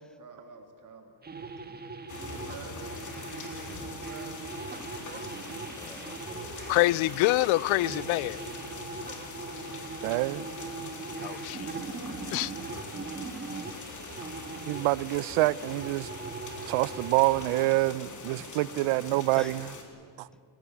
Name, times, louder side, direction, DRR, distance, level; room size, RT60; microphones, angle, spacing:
voice 1, 0.2-1.1 2.1-4.8, right 4 dB, 40° right, 3.2 m, -49 dB
sound 1, 1.2-17.7, right 4 dB, 20° right, 1.6 m, -40 dB
sound 2, 2.1-19.8, left 4 dB, 35° left, 3.7 m, -43 dB
voice 2, 5.7-6.6 18.4-18.5 19.3-19.5, left 1 dB, ahead, 1.2 m, -48 dB
voice 3, 6.7-8.4 11.2-11.7 12.3-12.5, left 19 dB, 75° left, 0.7 m, -26 dB
voice 4, 10.0-10.4 14.7-16.1 16.7-19.6 20.2-20.3, right 19 dB, 80° right, 0.8 m, -26 dB
28.0 x 16.0 x 9.7 m
cardioid pair, 130°, 49 cm